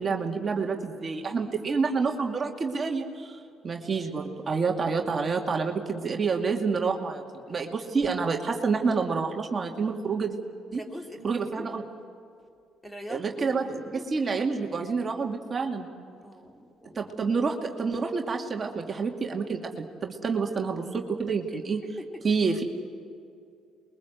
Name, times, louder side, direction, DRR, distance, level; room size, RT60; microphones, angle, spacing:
voice 1, 0.0-3.4 3.6-7.2 7.5-10.4 10.7-10.8 11.2-11.8 13.1-15.9 17.0-21.8 22.2-22.6, right 4 dB, 35° right, 2 dB, 2.5 m, -28 dB
voice 2, 10.7-11.8 12.8-14.2 16.2-17.1 21.5-21.6 22.0-22.2, equal, 10° left, 3 dB, 3.3 m, -43 dB
28.0 x 22.5 x 8.0 m, 2.5 s
supercardioid pair, 80°, 0 cm